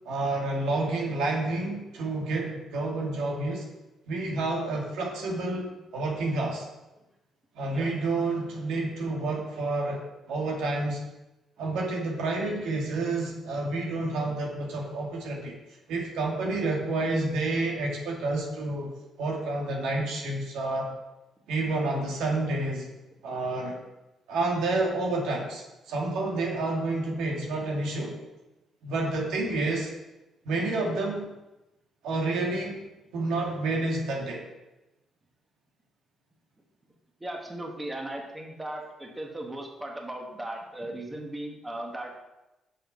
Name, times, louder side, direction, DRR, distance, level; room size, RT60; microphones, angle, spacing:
voice 1, 0.1-3.7 4.1-6.7 7.6-11.0 11.6-15.6 15.9-18.9 19.2-20.9 21.5-22.9 23.2-23.8 24.3-28.2 28.8-29.9 30.4-31.3 32.0-32.8 33.1-34.4, right 2 dB, 85° right, -1 dB, 1.8 m, -29 dB
voice 2, 37.2-42.2, right 1 dB, 15° right, 1 dB, 1.5 m, -37 dB
6.7 x 5.8 x 5.4 m, 0.98 s
cardioid pair, 90°, 0 cm